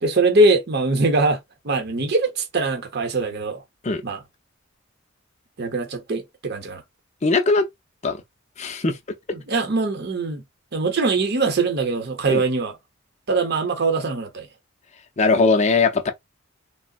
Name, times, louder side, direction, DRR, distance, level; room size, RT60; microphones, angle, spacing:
voice 1, 0.0-1.4 1.6-3.6 4.0-4.2 5.6-6.8 9.3-10.4 10.7-12.8 13.3-14.5, right 3 dB, 55° right, 0.7 m, -22 dB
voice 2, 7.2-7.7 8.0-8.2 8.6-9.0 12.3-12.4 15.2-16.1, left 3 dB, 35° left, 0.5 m, -19 dB
3.6 x 2.0 x 2.3 m
head